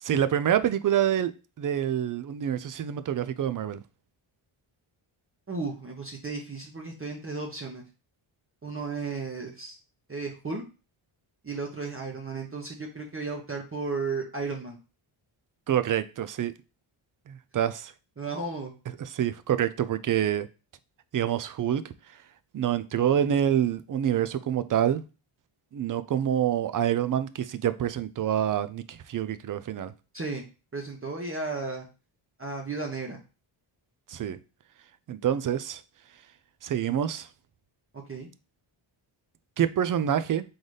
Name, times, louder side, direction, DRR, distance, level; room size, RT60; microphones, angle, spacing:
voice 1, 0.0-1.3 1.6-3.8 15.7-16.5 17.3-17.9 19.0-20.5 21.1-21.9 22.5-25.0 25.7-29.9 34.1-34.4 35.1-35.8 36.6-37.3 39.6-40.4, right 10 dB, 45° right, 13 dB, 0.4 m, -26 dB
voice 2, 5.5-7.8 8.6-9.8 10.1-10.6 11.4-14.8 18.2-18.7 30.1-30.4 30.7-31.9 32.4-33.2 37.9-38.3, right 3 dB, 25° right, 0 dB, 1.0 m, -34 dB
3.9 x 3.9 x 3.3 m, 0.31 s
cardioid pair, 95°, 50 cm